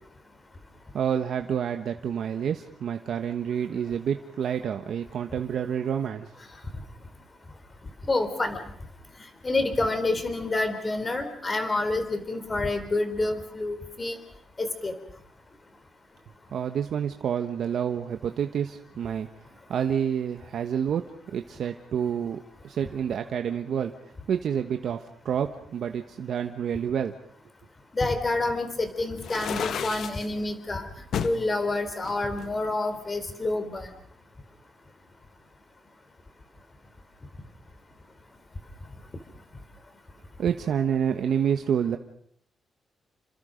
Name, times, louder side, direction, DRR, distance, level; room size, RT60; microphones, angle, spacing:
voice 1, 0.9-6.3 16.5-19.3 19.7-21.0 21.3-23.9 24.3-27.2 40.4-42.0, right 8 dB, 65° right, 6 dB, 1.2 m, -28 dB
voice 2, 8.1-8.6 9.4-14.2 14.6-14.9 27.9-30.9 31.2-33.9, left 2 dB, 25° left, 8 dB, 3.9 m, -28 dB
sound 1, 29.2-30.3 31.1-31.4 32.0-33.1, left 8 dB, 65° left, 1.2 m, -32 dB
29.5 x 26.5 x 5.2 m, 0.66 s
cardioid pair, 130°, 0 cm